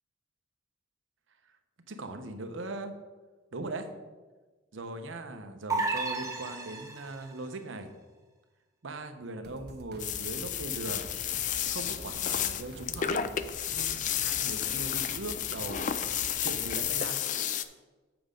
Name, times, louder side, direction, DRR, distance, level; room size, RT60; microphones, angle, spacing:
voice 1, 1.9-2.9 3.5-3.9 4.7-7.9 8.8-11.1 11.6-13.2 13.7-15.8 16.4-17.2, right 2 dB, 75° right, 7 dB, 0.8 m, -39 dB
sound 1, 5.7-7.3, right 3 dB, 15° right, 0.7 m, -32 dB
sound 2, 9.4-17.0, equal, 55° right, 1.0 m, -48 dB
sound 3, 10.0-17.6, left 9 dB, 40° left, 0.3 m, -32 dB
7.8 x 5.1 x 5.1 m, 1.3 s
head